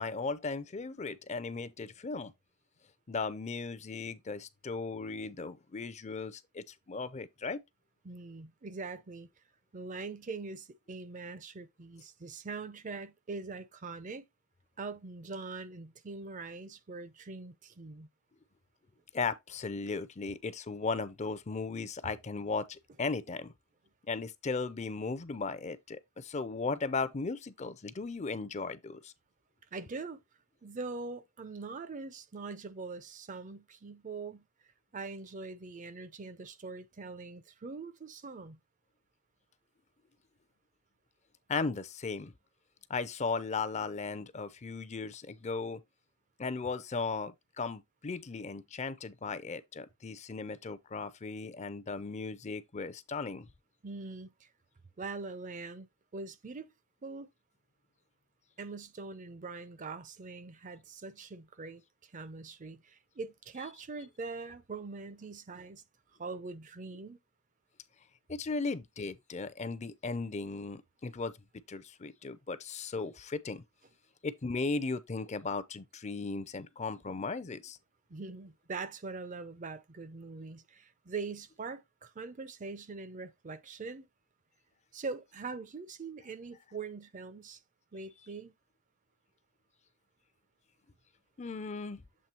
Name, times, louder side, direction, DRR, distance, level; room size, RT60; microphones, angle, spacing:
voice 1, 0.0-2.3 3.1-7.6 19.1-23.5 24.1-29.1 41.5-42.3 42.9-45.8 46.4-53.5 68.3-71.3 71.7-73.6 74.2-77.8 91.4-92.0, left 4 dB, 35° left, 0.5 m, -36 dB
voice 2, 8.0-9.3 9.7-14.2 14.8-18.1 29.7-30.2 30.6-34.4 34.9-38.6 53.8-54.5 55.0-55.9 56.1-56.7 57.0-57.3 58.6-65.8 66.2-67.2 78.1-84.1 84.9-87.6 87.9-88.5, right 4 dB, 35° right, 0.5 m, -42 dB
7.6 x 3.1 x 4.3 m
head